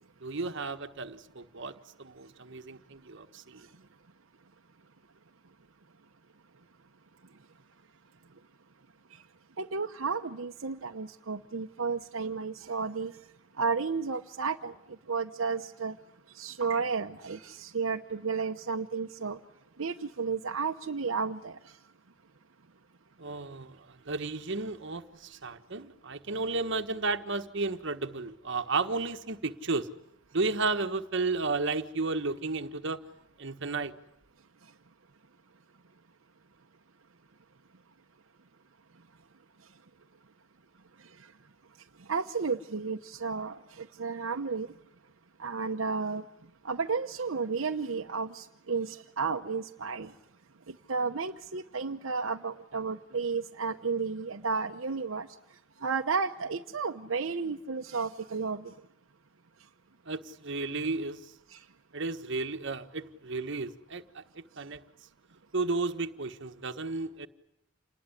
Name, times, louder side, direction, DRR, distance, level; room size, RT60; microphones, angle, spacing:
voice 1, 0.2-3.7 23.2-29.9 30.3-33.0 33.4-33.9 60.1-61.3 61.9-64.8 65.5-67.3, right 3 dB, 60° right, 1.4 m, -33 dB
voice 2, 9.6-13.1 13.6-14.7 15.1-16.0 16.3-19.4 19.8-21.5 42.1-44.7 45.4-46.2 46.6-50.1 50.7-55.3 55.8-58.7 61.5-61.6, right 5 dB, 75° right, 0.9 m, -32 dB
28.0 x 20.0 x 9.9 m
head